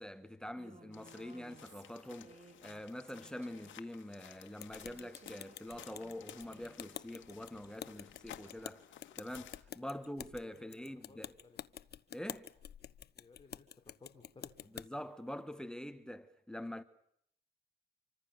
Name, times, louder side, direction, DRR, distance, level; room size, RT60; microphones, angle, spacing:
voice 1, 0.0-2.3 2.6-8.8 9.2-11.3 12.1-12.5 14.7-16.8, left 1 dB, 5° left, 1.6 m, -45 dB
Female speech woman speaking, 0.6-2.8 3.1-3.8 4.8-6.9, right 4 dB, 35° right, 5.2 m, -59 dB
sound 1, 0.9-9.6, left 11 dB, 75° left, 2.0 m, -56 dB
sound 2, 4.6-14.9, left 9 dB, 55° left, 1.0 m, -49 dB
voice 2, 9.7-10.0 10.4-10.8 11.1-11.6 13.1-14.7, left 4 dB, 25° left, 3.9 m, -60 dB
26.5 x 25.0 x 6.9 m
cardioid pair, 90°, 20 cm